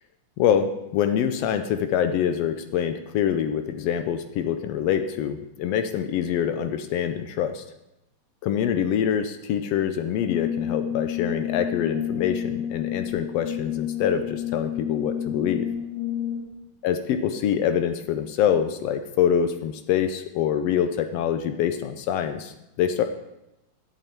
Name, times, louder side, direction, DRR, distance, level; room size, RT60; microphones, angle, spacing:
voice 1, 0.4-7.6 8.4-15.7 16.8-23.0, left 9 dB, 85° left, 8 dB, 1.4 m, -25 dB
Brass instrument, 10.2-16.6, left 9 dB, 50° left, 1.8 m, -30 dB
12.0 x 8.1 x 4.5 m, 0.92 s
omnidirectional pair, 3.5 m